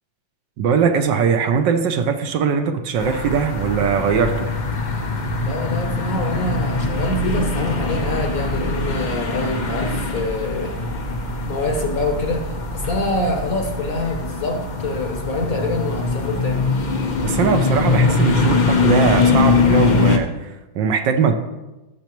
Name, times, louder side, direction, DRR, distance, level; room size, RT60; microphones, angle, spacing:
voice 1, 0.6-4.5 17.2-21.3, right 6 dB, 70° right, 6 dB, 1.3 m, -20 dB
sound 1, 3.0-20.2, left 3 dB, 70° left, 0.4 m, -22 dB
voice 2, 5.4-10.8 11.4-16.7, left 2 dB, 55° left, 3 dB, 1.2 m, -25 dB
15.0 x 6.6 x 3.0 m, 1.1 s
omnidirectional pair, 2.1 m